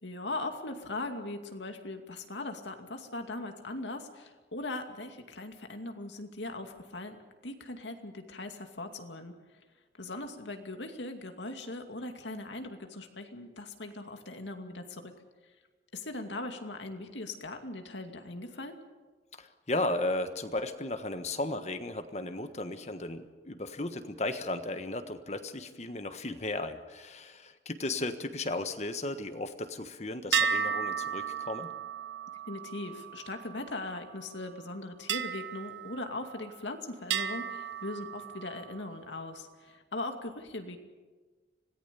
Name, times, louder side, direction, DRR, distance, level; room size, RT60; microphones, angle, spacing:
voice 1, 0.0-7.2 7.4-9.3 10.0-15.1 15.9-18.8 32.5-40.8, left 2 dB, 90° left, 5 dB, 2.4 m, -40 dB
voice 2, 19.3-31.7, left 2 dB, 40° left, 9 dB, 1.4 m, -35 dB
sound 1, 30.3-34.0 35.1-36.6 37.1-38.8, right 7 dB, 85° right, 0.9 m, -34 dB
26.0 x 18.5 x 7.0 m, 1.3 s
head